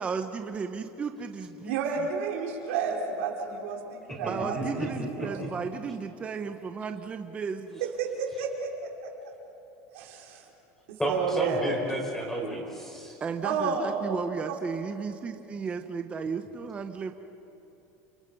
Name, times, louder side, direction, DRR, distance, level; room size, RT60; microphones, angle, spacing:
voice 1, 0.0-1.8 4.3-7.8 13.2-17.1, right 5 dB, 15° right, 6 dB, 0.9 m, -34 dB
voice 2, 1.6-5.4 7.8-9.3 9.9-10.4 10.9-11.7 13.4-14.6, right 5 dB, 85° right, -1 dB, 5.1 m, -31 dB
voice 3, 4.1-5.5 11.0-13.2, right 1 dB, 5° left, 0 dB, 4.9 m, -33 dB
30.0 x 28.0 x 5.5 m, 2.9 s
cardioid pair, 165°, 7 cm